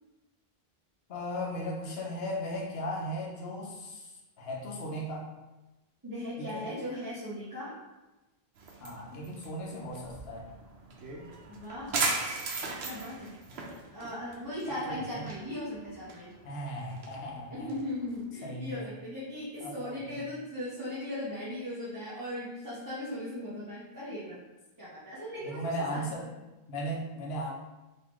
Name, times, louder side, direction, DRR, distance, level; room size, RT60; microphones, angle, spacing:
voice 1, 1.1-5.3 6.4-6.7 8.8-10.5 14.9-15.3 16.4-17.7 18.4-18.9 19.6-20.2 25.4-26.3 26.7-27.5, equal, 75° left, -2 dB, 1.0 m, -37 dB
voice 2, 6.0-7.8 11.5-12.0 12.8-13.4 13.9-16.3 17.5-24.4 24.8-26.1, left 1 dB, 20° right, -11 dB, 0.8 m, -38 dB
sound 1, 8.6-18.2, right 3 dB, 80° right, 0.9 m, -38 dB
3.8 x 2.9 x 3.0 m, 1.1 s
omnidirectional pair, 1.0 m